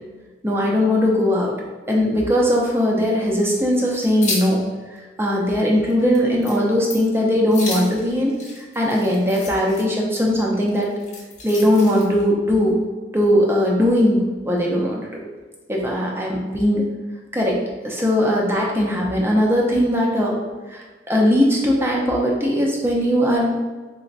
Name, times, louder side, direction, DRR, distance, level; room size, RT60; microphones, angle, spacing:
voice 1, 0.4-1.5 1.9-4.6 5.2-10.9 11.4-12.8 13.1-15.2 15.7-16.8 17.3-17.6 17.8-20.4 20.7-23.6, equal, 15° right, -2 dB, 0.5 m, -19 dB
sound 1, 3.4-4.6 5.0-5.1 5.5-5.6 5.9-6.2 6.4-6.6 6.9-7.1 7.5-9.8 10.7-12.2, left 3 dB, 40° left, 0.8 m, -32 dB
4.0 x 2.1 x 2.5 m, 1.4 s
head